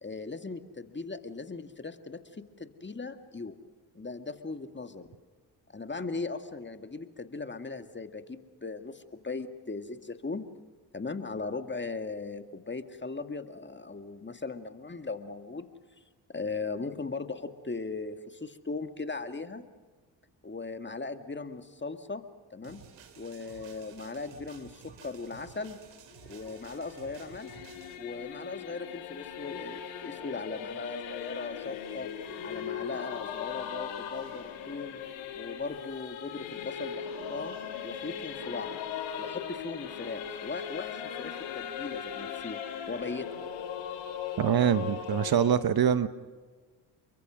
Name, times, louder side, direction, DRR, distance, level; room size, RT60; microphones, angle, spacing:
voice 1, 0.0-3.6 3.9-5.1 5.7-10.5 10.9-15.7 16.0-16.1 16.3-19.6 20.4-22.2 22.5-22.8 23.2-25.8 26.3-27.7 27.9-32.1 32.4-35.0 35.3-37.6 37.8-38.8 39.2-42.6 42.9-43.3, left 3 dB, 25° left, 8 dB, 2.0 m, -38 dB
sound 1, 22.6-28.0, right 7 dB, 75° right, 3.1 m, -53 dB
Singing / Musical instrument, 26.1-45.5, left 8 dB, 85° left, 3.0 m, -39 dB
voice 2, 44.4-46.1, right 8 dB, 50° right, 13 dB, 1.2 m, -24 dB
30.0 x 22.5 x 6.4 m, 1.4 s
hypercardioid pair, 50°, 46 cm